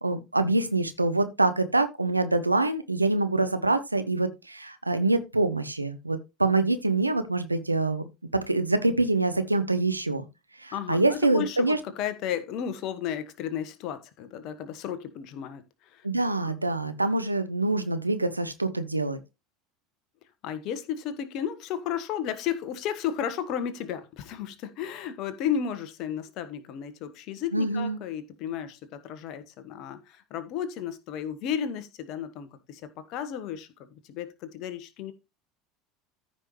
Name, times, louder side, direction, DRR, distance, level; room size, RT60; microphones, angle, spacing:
voice 1, 0.0-8.0 8.3-10.2 10.6-11.8 16.0-19.2 27.5-28.0, right 2 dB, 90° right, 0.8 m, -25 dB
voice 2, 10.7-16.0 16.4-16.5 20.4-35.1, left 9 dB, 50° left, 1.3 m, -33 dB
14.0 x 5.5 x 3.1 m
figure-of-eight pair, 75°, 0 cm